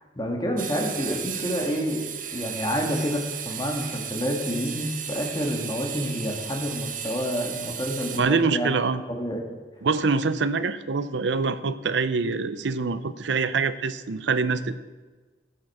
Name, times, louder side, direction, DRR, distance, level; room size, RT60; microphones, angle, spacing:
voice 1, 0.1-2.1 2.3-8.7 9.1-9.4, equal, 25° left, 1 dB, 1.7 m, -28 dB
sound 1, 0.6-8.2, right 8 dB, 45° right, 1.0 m, -35 dB
voice 2, 8.2-9.0 9.8-14.7, right 4 dB, 80° right, 14 dB, 0.6 m, -25 dB
12.5 x 8.7 x 4.8 m, 1.3 s
head